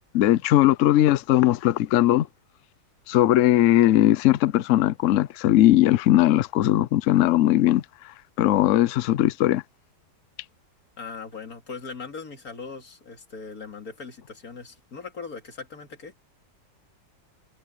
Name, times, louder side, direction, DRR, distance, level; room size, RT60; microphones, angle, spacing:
voice 1, 0.1-2.3 3.1-7.8 8.4-9.6, left 13 dB, 75° left, 0.7 m, -19 dB
voice 2, 11.0-16.2, left 5 dB, 50° left, 2.9 m, -39 dB
omnidirectional pair, 2.0 m